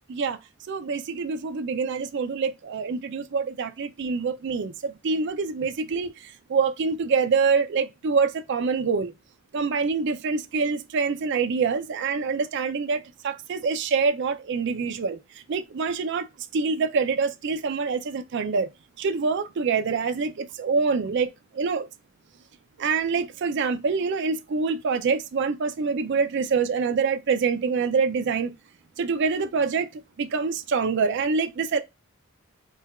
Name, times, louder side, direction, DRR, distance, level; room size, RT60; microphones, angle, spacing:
voice 1, 0.7-9.1 9.5-15.2 15.5-16.3 16.5-18.7 19.0-21.9 22.8-28.5 29.0-29.9 30.2-31.8, right 5 dB, 55° right, 0.4 m, -25 dB
3.8 x 2.3 x 4.1 m
head